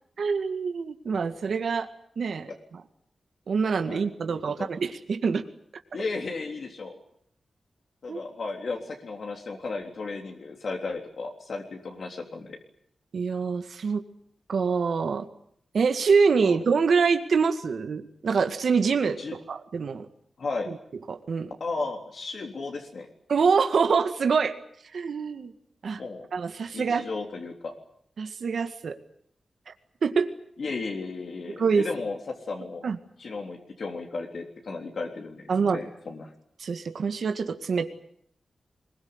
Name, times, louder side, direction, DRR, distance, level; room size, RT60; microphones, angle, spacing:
voice 1, 0.2-1.9 2.2-2.5 3.5-5.4 8.1-8.2 13.1-14.0 14.5-15.3 15.7-19.2 19.5-20.1 20.7-20.8 21.1-21.5 23.3-24.5 24.9-25.5 25.8-26.0 26.3-27.1 28.2-29.0 29.7-29.8 30.0-30.3 31.6-31.8 32.8-33.0 35.5-35.8 36.6-37.9, right 5 dB, 70° right, 7 dB, 2.0 m, -25 dB
voice 2, 4.3-4.7 5.9-7.0 8.0-12.6 16.4-16.6 19.2-19.3 20.4-20.7 21.6-23.1 26.0-26.3 26.7-27.7 30.6-32.8 33.2-36.3, left 3 dB, 65° left, 2 dB, 3.5 m, -34 dB
24.5 x 22.0 x 9.7 m, 0.69 s
wide cardioid pair, 140°, 0 cm